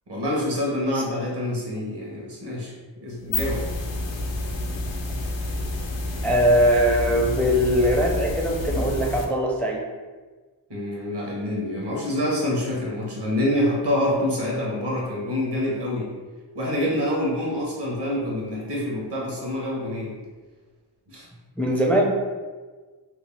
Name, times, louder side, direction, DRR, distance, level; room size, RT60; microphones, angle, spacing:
voice 1, 0.1-2.7 3.0-3.6 10.7-16.1 16.5-20.1 21.1-21.3, left 1 dB, 65° right, -3 dB, 1.1 m, -26 dB
sound 1, 3.1-9.2, left 2 dB, 85° left, 0.6 m, -29 dB
voice 2, 6.2-9.8 21.6-22.1, equal, 5° left, -1 dB, 0.4 m, -21 dB
2.9 x 2.0 x 3.3 m, 1.4 s
cardioid pair, 50°, 44 cm